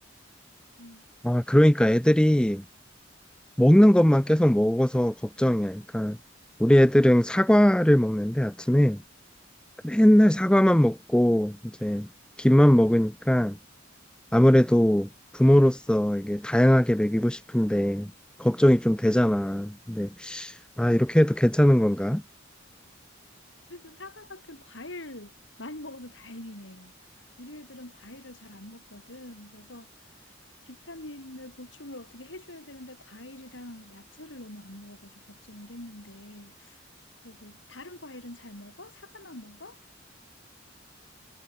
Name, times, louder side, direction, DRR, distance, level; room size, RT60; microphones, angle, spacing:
voice 1, 1.2-2.6 3.6-6.2 6.6-9.0 9.8-12.1 12.4-13.6 14.3-18.1 18.4-22.2, equal, 5° left, 0.5 m, -20 dB
voice 2, 23.7-25.3 25.6-26.9 27.4-29.9 30.7-36.8 37.2-39.8, left 1 dB, 70° left, 5.0 m, -44 dB
head